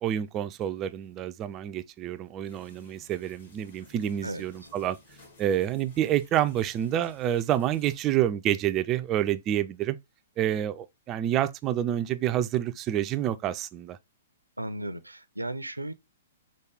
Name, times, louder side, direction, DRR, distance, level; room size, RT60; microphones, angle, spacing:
voice 1, 0.0-5.0 5.4-10.0 10.4-14.0, right 11 dB, 25° right, 0.3 m, -28 dB
sound 1, 2.4-8.0, left 3 dB, 55° left, 1.9 m, -57 dB
voice 2, 14.6-15.9, right 1 dB, 85° right, 0.5 m, -35 dB
4.7 x 2.3 x 4.6 m
figure-of-eight pair, 115°, 0 cm